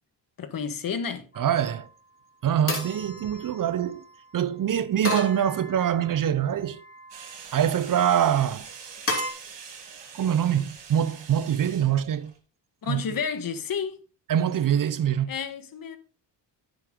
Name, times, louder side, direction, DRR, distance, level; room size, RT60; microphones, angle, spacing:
voice 1, 0.4-1.2 12.8-14.0 15.3-16.0, left 6 dB, 50° left, 1.5 m, -31 dB
sound 1, 1.3-1.8 2.7-4.0 5.0-6.1 6.7-7.3 9.1-9.3, left 2 dB, 30° left, 2.8 m, -33 dB
voice 2, 1.4-1.9 2.4-4.0 4.3-6.8 7.5-8.7 9.2-9.3 10.1-12.3 12.9-13.0 14.3-15.3, right 9 dB, 45° right, 0.7 m, -24 dB
sound 2, 7.1-12.4, right 6 dB, 65° right, 2.8 m, -44 dB
10.0 x 7.9 x 3.7 m
cardioid pair, 110°, 44 cm